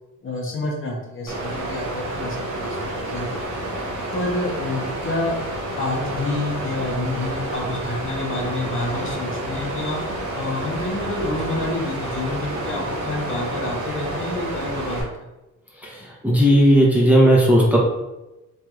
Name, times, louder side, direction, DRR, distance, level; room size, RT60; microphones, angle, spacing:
voice 1, 0.2-2.8 3.1-3.3 4.1-5.4 5.8-10.0 10.3-15.3, left 2 dB, 45° left, -1 dB, 0.8 m, -28 dB
Water, 1.3-15.0, right 1 dB, 70° right, 0.9 m, -29 dB
voice 2, 16.2-17.8, equal, 5° right, -4 dB, 0.8 m, -15 dB
3.2 x 2.8 x 2.4 m, 0.99 s
cardioid pair, 90°, 30 cm